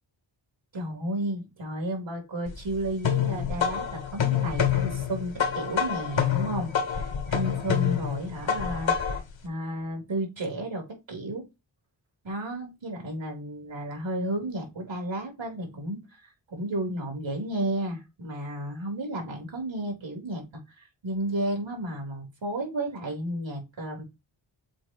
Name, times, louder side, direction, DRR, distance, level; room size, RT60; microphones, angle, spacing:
voice 1, 0.7-9.2 9.4-11.4 12.2-24.0, right 1 dB, 75° right, 3.5 m, -33 dB
sound 1, 2.5-9.3, left 8 dB, 75° left, 1.6 m, -27 dB
7.5 x 2.9 x 4.5 m
wide cardioid pair, 75°, 46 cm